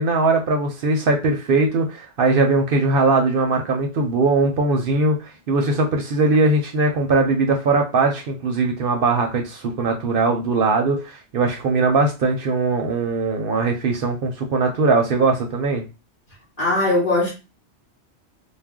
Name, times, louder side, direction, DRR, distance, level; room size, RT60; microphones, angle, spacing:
voice 1, 0.0-15.8, right 3 dB, 60° right, 0.7 m, -20 dB
voice 2, 16.6-17.3, left 2 dB, 50° left, 1.0 m, -19 dB
2.4 x 2.0 x 3.5 m
omnidirectional pair, 1.2 m